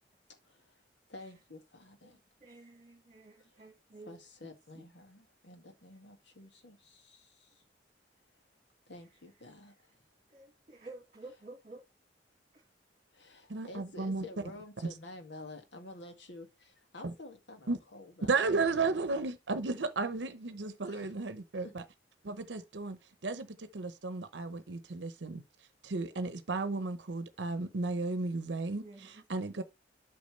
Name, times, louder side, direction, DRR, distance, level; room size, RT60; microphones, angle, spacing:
voice 1, 0.3-0.8 1.1-2.2 3.4-3.7 4.1-7.6 8.9-10.1 13.1-19.0 20.8-21.2 21.6-21.7 22.5-22.6, left 2 dB, 85° left, 2.0 m, -51 dB
voice 2, 2.0-4.2 4.8-4.9 10.3-11.8 12.5-12.6 28.8-29.2, right 2 dB, 35° right, 1.7 m, -51 dB
voice 3, 13.5-14.2 17.0-17.1 17.7-17.8 18.3-21.8 22.2-25.4 25.8-29.6, right 3 dB, 80° right, 0.8 m, -34 dB
8.5 x 5.9 x 3.1 m
head